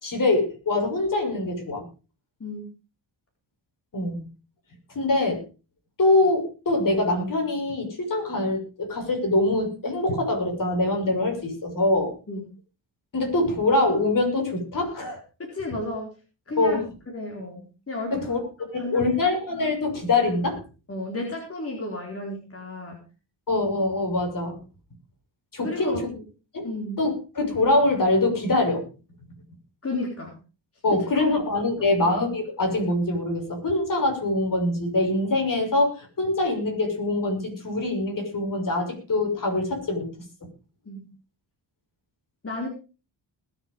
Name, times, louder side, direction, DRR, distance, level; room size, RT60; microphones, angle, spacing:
voice 1, 0.0-1.8 3.9-4.2 4.9-5.4 6.0-12.1 13.1-15.2 16.6-16.8 18.1-18.4 18.7-20.6 23.5-24.6 25.5-26.1 26.5-26.7 27.0-28.8 30.8-40.1, left 2 dB, 45° left, 3 dB, 6.3 m, -24 dB
voice 2, 15.5-16.1 16.5-16.8 17.1-18.2 18.6-19.0 20.9-23.0 25.6-26.0 26.6-27.0 29.8-30.4 31.2-31.3 31.8-32.1 40.9-41.0 42.4-42.7, left 2 dB, 30° left, -1 dB, 4.4 m, -32 dB
20.5 x 7.4 x 5.3 m, 0.34 s
cardioid pair, 110°, 44 cm